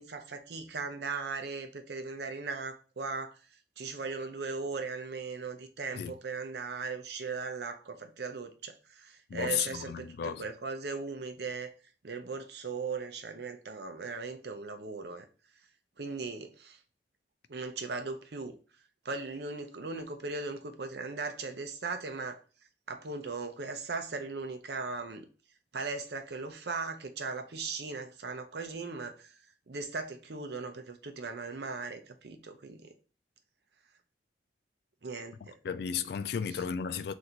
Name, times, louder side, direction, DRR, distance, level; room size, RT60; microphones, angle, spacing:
voice 1, 0.0-3.4 3.8-11.7 12.0-15.3 16.0-16.8 17.5-18.6 19.0-22.4 22.9-25.3 25.7-29.3 29.7-32.9 35.0-35.6 36.5-36.6, right 4 dB, 65° right, 0.6 m, -38 dB
voice 2, 9.3-10.5 35.4-37.1, left 7 dB, 60° left, 0.3 m, -34 dB
3.9 x 2.7 x 4.4 m
head